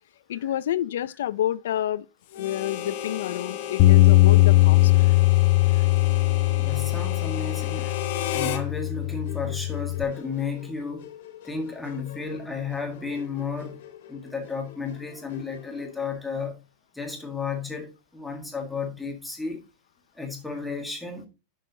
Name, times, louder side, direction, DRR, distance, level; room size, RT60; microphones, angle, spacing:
voice 1, 0.3-2.1 2.4-4.9, left 12 dB, 85° left, 0.5 m, -29 dB
Musical instrument, 2.3-16.1, left 9 dB, 65° left, 1.9 m, -47 dB
Harmonica, 2.3-8.6, left 9 dB, 50° left, 1.1 m, -34 dB
Bass guitar, 3.8-10.0, left 19 dB, 35° left, 0.3 m, -20 dB
voice 2, 6.6-7.9 8.3-11.1 11.4-13.8 14.1-16.5 16.9-19.6 20.2-21.3, left 5 dB, 5° left, 1.6 m, -33 dB
11.0 x 6.5 x 2.8 m
supercardioid pair, 180°, 0 cm